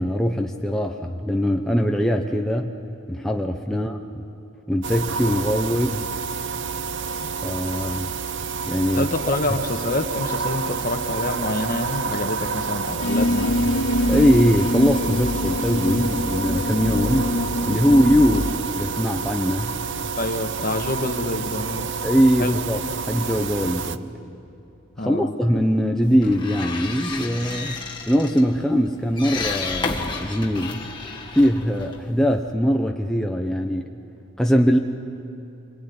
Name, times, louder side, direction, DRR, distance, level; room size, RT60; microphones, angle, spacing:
voice 1, 0.0-2.7 3.1-4.2 4.7-6.0 7.4-8.1 8.7-9.1 9.5-9.6 14.1-17.3 17.7-18.5 18.8-19.7 22.0-22.8 23.1-24.1 25.0-27.8 28.1-30.8 31.3-33.9 34.4-34.8, equal, ahead, 2 dB, 0.8 m, -21 dB
sound 1, 4.8-24.0, right 5 dB, 55° right, 0.7 m, -29 dB
voice 2, 8.9-13.6 20.2-21.9 22.4-22.6 25.0-25.3, left 2 dB, 40° left, 6 dB, 1.5 m, -27 dB
sound 2, 13.0-18.5, left 1 dB, 60° left, 1.8 m, -24 dB
sound 3, 26.0-32.5, left 4 dB, 20° left, 1.7 m, -32 dB
26.0 x 22.5 x 9.5 m, 2.6 s
head